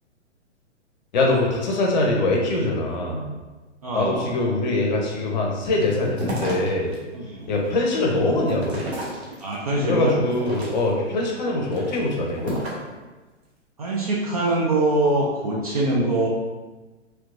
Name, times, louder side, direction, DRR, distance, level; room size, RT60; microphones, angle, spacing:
voice 1, 1.1-3.3 3.9-7.0 7.5-8.9 9.8-12.6, left 2 dB, 40° left, -1 dB, 0.7 m, -23 dB
voice 2, 3.8-4.3 7.1-7.5 9.4-10.2 13.8-16.3, right 2 dB, 30° right, -4 dB, 0.4 m, -23 dB
sound 1, 5.7-7.0 7.4-9.7 10.2-11.1 11.6-12.9, right 1 dB, 60° right, 1.1 m, -33 dB
3.3 x 2.9 x 2.5 m, 1.2 s
figure-of-eight pair, 125°, 36 cm